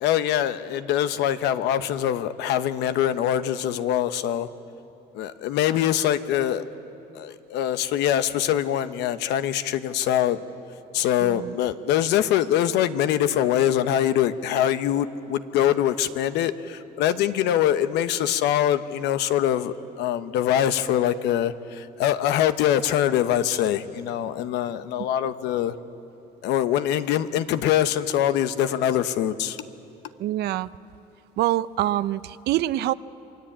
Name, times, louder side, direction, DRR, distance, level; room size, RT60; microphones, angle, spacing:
voice 1, 0.0-4.5 5.1-6.7 7.1-10.4 10.9-25.8 26.4-29.6, left 11 dB, 90° left, 11 dB, 1.0 m, -23 dB
voice 2, 11.2-11.5 30.2-30.7 31.4-32.9, right 14 dB, 75° right, 16 dB, 0.7 m, -25 dB
27.5 x 22.0 x 8.8 m, 2.9 s
cardioid pair, 110°, 17 cm